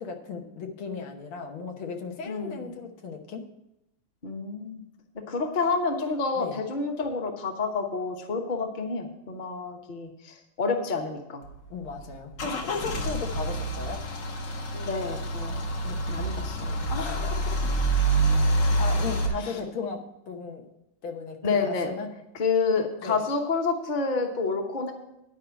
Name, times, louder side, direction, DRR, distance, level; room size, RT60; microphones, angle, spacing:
voice 1, 0.0-3.5 6.4-6.6 11.7-14.0 15.8-16.1 16.9-17.7 18.1-20.7 21.0-22.1 23.0-23.2, left 4 dB, 80° left, 3 dB, 2.0 m, -36 dB
voice 2, 2.3-2.8 4.2-4.8 5.3-11.4 14.7-15.6 16.1-16.8 19.4-19.6 21.4-21.9 22.3-24.9, left 4 dB, 30° left, 4 dB, 0.9 m, -29 dB
Car / Engine starting / Idling, 11.4-19.3, right 2 dB, 60° left, 1.8 m, -27 dB
10.0 x 4.9 x 8.1 m, 0.88 s
omnidirectional pair, 2.3 m